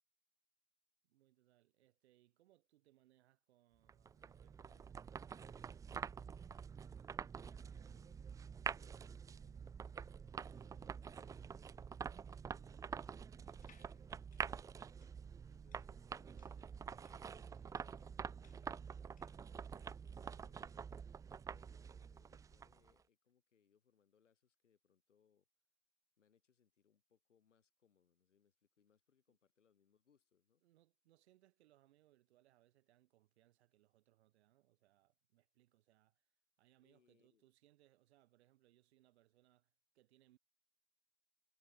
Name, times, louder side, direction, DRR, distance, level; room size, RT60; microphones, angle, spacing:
voice 1, 1.0-6.1 15.7-16.5 29.3-29.4 30.6-40.4, right 15 dB, 60° right, 4.2 m, -73 dB
sound 1, 3.9-22.9, right 6 dB, 10° right, 0.4 m, -47 dB
voice 2, 7.5-12.9 13.3-14.6 15.4-20.8 21.4-25.4 26.2-30.6 36.8-37.5, left 7 dB, 80° left, 6.2 m, -77 dB
sound 2, 13.5-19.5, left 9 dB, 20° left, 1.5 m, -73 dB
hypercardioid pair, 100°, 36 cm